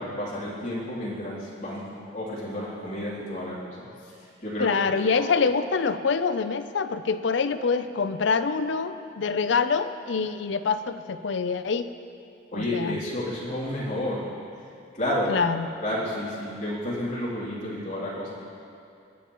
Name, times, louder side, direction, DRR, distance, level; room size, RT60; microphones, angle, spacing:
voice 1, 0.0-1.9 2.1-3.8 4.4-5.3 12.5-14.3 14.9-15.4 15.8-18.3, left 1 dB, 40° left, -8 dB, 3.0 m, -31 dB
voice 2, 4.6-11.9 12.5-13.0 15.3-15.7, left 5 dB, 70° left, 11 dB, 0.5 m, -25 dB
24.5 x 8.3 x 3.0 m, 2.6 s
head